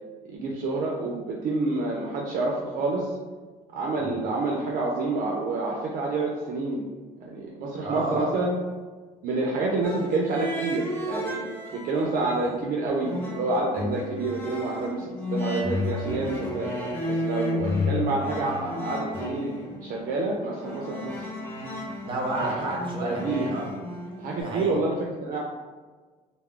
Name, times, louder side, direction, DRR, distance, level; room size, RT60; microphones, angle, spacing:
voice 1, 0.3-3.1 3.7-6.8 7.2-8.6 9.2-11.4 11.7-16.7 17.1-19.5 19.8-21.3 22.4-22.5 23.0-23.5 24.2-25.4, right 2 dB, 55° right, -2 dB, 0.4 m, -28 dB
voice 2, 7.8-8.3 22.0-23.7 24.4-24.8, right 1 dB, 30° right, -2 dB, 0.8 m, -31 dB
sound 1, 9.8-12.1 12.4-24.4, left 1 dB, 15° left, 0.5 m, -32 dB
2.2 x 2.0 x 3.5 m, 1.4 s
cardioid pair, 110°, 17 cm